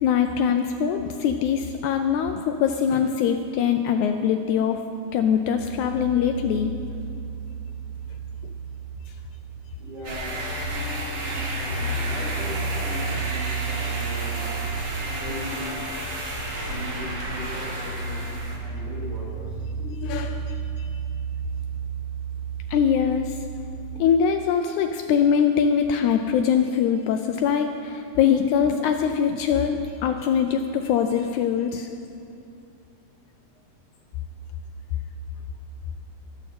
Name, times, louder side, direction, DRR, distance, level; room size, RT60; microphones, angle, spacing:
voice 1, 0.0-4.8 5.1-6.7 19.8-20.9 22.7-23.4 24.0-31.9, left 7 dB, 80° left, 6 dB, 1.8 m, -23 dB
sound 1, 5.5-23.9, right 4 dB, 65° left, 1.5 m, -33 dB
voice 2, 9.8-10.6 11.3-14.6 15.1-15.9 16.6-19.7, equal, 70° right, -8 dB, 4.9 m, -38 dB
sound 2, 10.0-18.6, right 1 dB, 55° right, 3.2 m, -32 dB
12.5 x 12.0 x 4.3 m, 2.6 s
omnidirectional pair, 3.7 m